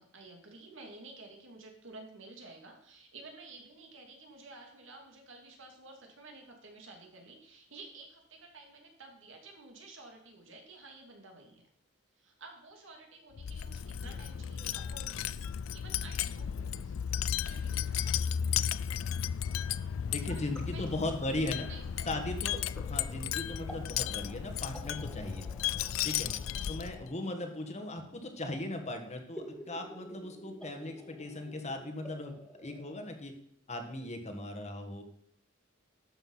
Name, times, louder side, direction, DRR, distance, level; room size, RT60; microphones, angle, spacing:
voice 1, 0.0-11.6 12.2-15.5 15.7-17.0 17.3-18.2 20.3-20.4 20.7-20.9 21.2-21.3 21.7-22.1 26.2-26.3, right 3 dB, 70° right, 2 dB, 2.7 m, -52 dB
Wind chime, 13.4-27.1, left 9 dB, 80° left, 0.4 m, -34 dB
sound 1, 19.4-33.2, right 1 dB, 5° left, 1.6 m, -52 dB
voice 2, 20.1-21.7 22.0-25.5 26.0-26.3 26.7-32.3 32.6-33.3 33.7-35.0, left 1 dB, 35° left, 5 dB, 1.7 m, -38 dB
12.0 x 7.1 x 5.7 m, 0.71 s
head